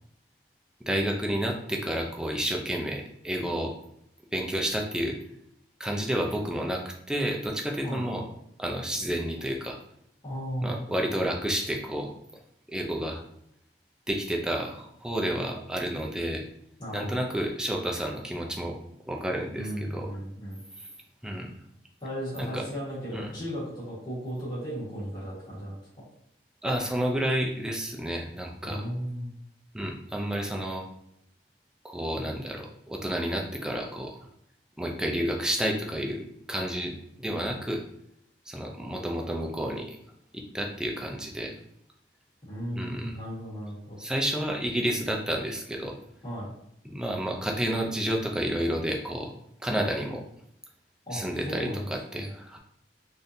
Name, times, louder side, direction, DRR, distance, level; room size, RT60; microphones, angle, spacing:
voice 1, 0.9-3.7 4.3-5.2 5.8-8.2 8.6-9.8 10.6-12.1 12.7-13.2 14.1-16.4 16.9-18.8 19.1-20.1 21.2-21.5 22.4-22.6 23.1-23.3 26.6-28.8 29.7-30.9 31.8-34.2 34.8-36.2 36.5-37.8 38.5-39.9 40.3-41.5 42.7-43.2 44.0-45.9 46.9-49.3 49.6-50.2 51.1-51.7 52.1-52.6, equal, 5° right, 0 dB, 0.4 m, -30 dB
voice 2, 7.8-8.2 10.2-10.8 16.8-17.2 19.5-20.6 22.0-25.8 28.6-29.4 42.4-44.0 46.2-46.5 51.1-52.3, equal, 25° left, -11 dB, 1.4 m, -35 dB
3.6 x 2.6 x 2.6 m, 0.74 s
head